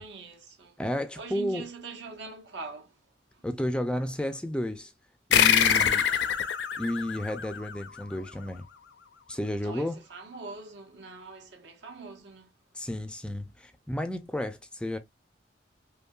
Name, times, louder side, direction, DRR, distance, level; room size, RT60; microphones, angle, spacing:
voice 1, 0.0-0.8 1.2-3.0 3.3-3.5 5.7-6.4 8.4-8.5 9.6-12.5, right 4 dB, 75° right, 1.0 m, -43 dB
voice 2, 0.8-1.7 3.4-4.9 5.3-6.0 6.8-8.7 9.3-10.0 12.7-15.0, left 1 dB, 5° left, 0.3 m, -32 dB
sound 1, 5.3-8.3, left 8 dB, 75° left, 0.5 m, -25 dB
5.3 x 2.2 x 2.2 m
head